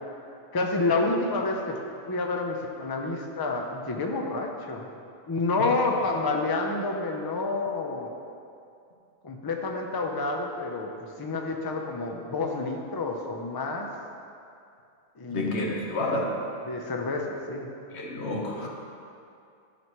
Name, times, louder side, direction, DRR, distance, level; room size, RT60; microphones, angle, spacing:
voice 1, 0.5-1.8 2.1-4.9 5.3-8.1 9.2-10.9 11.2-13.9 15.2-15.7 16.7-17.7, left 3 dB, 25° left, 2 dB, 0.5 m, -29 dB
voice 2, 15.3-16.4 17.9-18.7, left 2 dB, 85° left, 0 dB, 1.2 m, -29 dB
11.0 x 6.0 x 3.1 m, 2.5 s
omnidirectional pair, 1.1 m